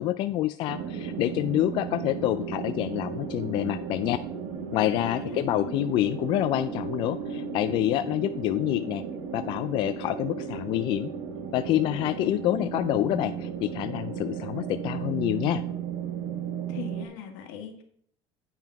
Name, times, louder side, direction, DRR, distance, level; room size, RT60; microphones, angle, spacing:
voice 1, 0.0-4.2 4.7-9.0 9.3-11.1 11.5-15.6, left 14 dB, 50° left, 11 dB, 0.3 m, -27 dB
sound 1, 0.7-17.1, right 6 dB, 80° right, 1.5 m, -35 dB
voice 2, 5.0-5.7 12.2-12.6 16.7-17.8, left 9 dB, 85° left, 5 dB, 1.6 m, -40 dB
9.1 x 5.6 x 4.7 m, 0.64 s
cardioid pair, 150°, 10 cm